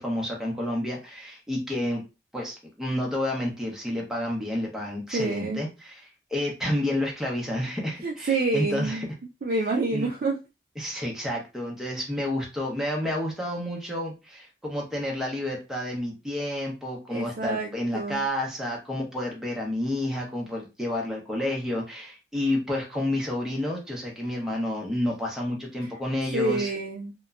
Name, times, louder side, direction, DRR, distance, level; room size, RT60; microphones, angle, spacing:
voice 1, 0.0-2.0 2.3-6.0 6.3-9.1 9.9-10.1 10.8-26.7, left 1 dB, 5° right, -2 dB, 0.7 m, -30 dB
voice 2, 5.1-5.6 8.0-9.0 9.4-10.4 17.1-18.2 26.3-27.1, right 3 dB, 55° right, -1 dB, 0.4 m, -27 dB
2.9 x 2.1 x 2.4 m, 0.27 s
head